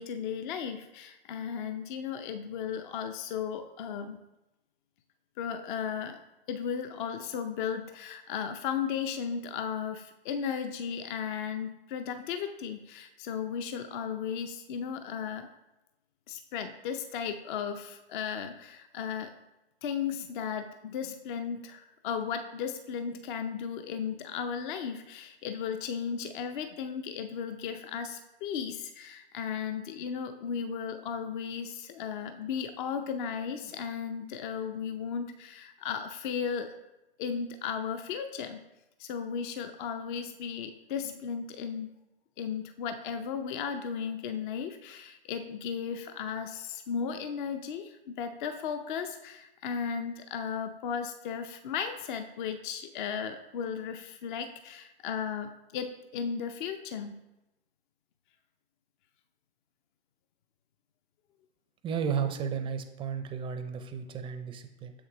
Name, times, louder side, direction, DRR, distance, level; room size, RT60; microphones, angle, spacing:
voice 1, 0.0-4.2 5.4-6.2 6.5-15.5 16.3-19.3 19.8-36.7 37.2-38.6 39.0-41.9 42.4-57.2, left 7 dB, 50° left, 7 dB, 0.6 m, -35 dB
voice 2, 61.8-64.9, right 7 dB, 15° right, 8 dB, 0.5 m, -33 dB
7.3 x 6.3 x 3.0 m, 0.96 s
hypercardioid pair, 115°, 31 cm